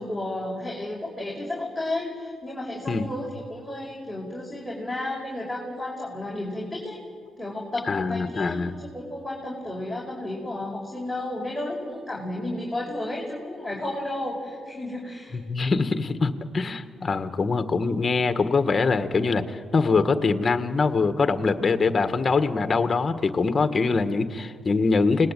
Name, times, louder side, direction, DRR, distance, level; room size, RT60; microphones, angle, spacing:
voice 1, 0.0-7.0 7.4-15.4, left 1 dB, ahead, -4 dB, 5.5 m, -32 dB
voice 2, 7.9-8.8 15.3-25.3, left 4 dB, 35° left, 9 dB, 1.8 m, -23 dB
29.0 x 20.0 x 9.2 m, 2.1 s
cardioid pair, 90°, 0 cm